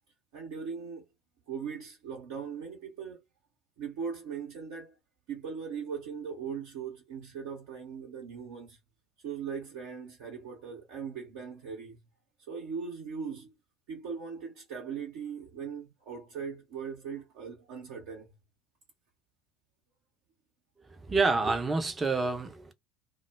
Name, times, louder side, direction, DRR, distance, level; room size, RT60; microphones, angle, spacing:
voice 1, 0.3-1.0 1.5-3.2 3.8-5.0 5.3-8.8 9.2-12.0 12.5-13.5 13.9-18.3, right 6 dB, 55° right, 0.7 m, -39 dB
voice 2, 21.1-22.7, right 3 dB, 20° right, 0.6 m, -27 dB
2.2 x 2.1 x 3.3 m
figure-of-eight pair, 70°, 0 cm